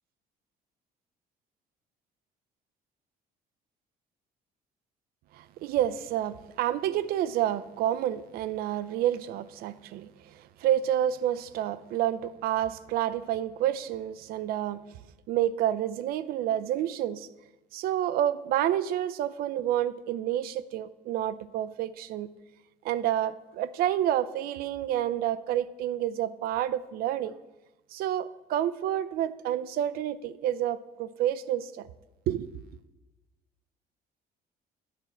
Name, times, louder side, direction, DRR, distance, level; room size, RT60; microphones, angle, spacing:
voice 1, 5.4-14.8 15.3-17.3 17.7-22.3 22.8-27.3 27.9-31.9 32.3-32.5, right 11 dB, 65° right, 16 dB, 0.5 m, -29 dB
9.2 x 4.4 x 7.3 m, 1.1 s
cardioid pair, 160°, 16 cm